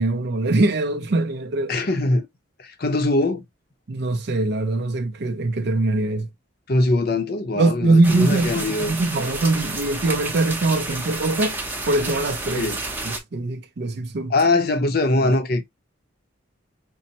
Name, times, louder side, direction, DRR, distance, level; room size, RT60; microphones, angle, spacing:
voice 1, 0.0-1.8 3.9-6.3 7.5-11.6 11.9-12.7 13.0-14.3 15.2-15.4, right 2 dB, 55° right, 0.5 m, -22 dB
voice 2, 1.7-2.3 2.6-3.4 6.7-9.0 12.6-12.8 14.3-15.6, left 2 dB, 50° left, 0.7 m, -21 dB
sound 1, 8.0-13.2, right 2 dB, 10° right, 0.6 m, -30 dB
5.3 x 2.0 x 2.8 m
head